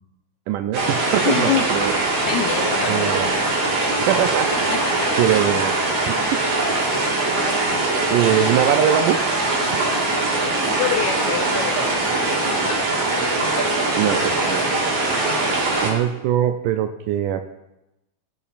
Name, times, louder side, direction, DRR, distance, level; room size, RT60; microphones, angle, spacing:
voice 1, 0.5-1.9 2.9-3.4 4.1-4.8 5.2-5.8 6.0-6.4 8.1-9.2 13.9-14.6 15.8-17.4, right 10 dB, 80° right, 7 dB, 1.9 m, -22 dB
sound 1, 0.7-15.9, right 2 dB, 50° right, 2.7 m, -21 dB
voice 2, 1.2-1.8 2.3-3.1 4.7-5.1 10.8-12.0 12.6-12.8, left 8 dB, 80° left, 3 dB, 1.7 m, -25 dB
18.5 x 7.0 x 2.5 m, 0.92 s
omnidirectional pair, 4.0 m